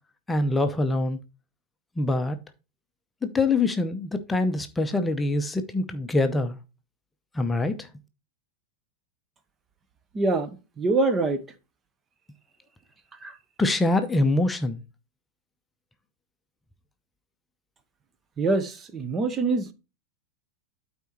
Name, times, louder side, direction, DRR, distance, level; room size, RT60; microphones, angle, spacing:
voice 1, 0.3-1.2 2.0-2.4 3.3-6.6 7.3-7.9 13.6-14.8, left 2 dB, 10° left, 0.8 m, -24 dB
voice 2, 10.1-10.5 10.8-11.4 13.2-13.3 18.4-19.7, right 3 dB, 20° right, 0.9 m, -24 dB
12.5 x 4.3 x 3.0 m
figure-of-eight pair, 90°, 0 cm